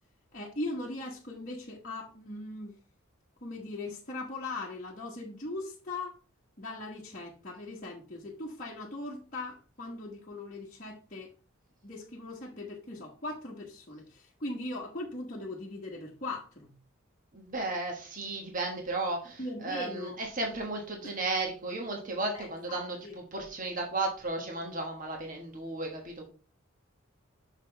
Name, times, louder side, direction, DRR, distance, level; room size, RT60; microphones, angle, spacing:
voice 1, 0.3-2.7 3.4-6.1 6.6-11.3 11.8-16.7 19.4-20.2 21.0-21.1 22.3-23.1, left 2 dB, 35° left, -5 dB, 1.1 m, -39 dB
voice 2, 17.3-26.3, right 2 dB, 35° right, 1 dB, 1.4 m, -34 dB
6.5 x 6.0 x 3.3 m, 0.37 s
head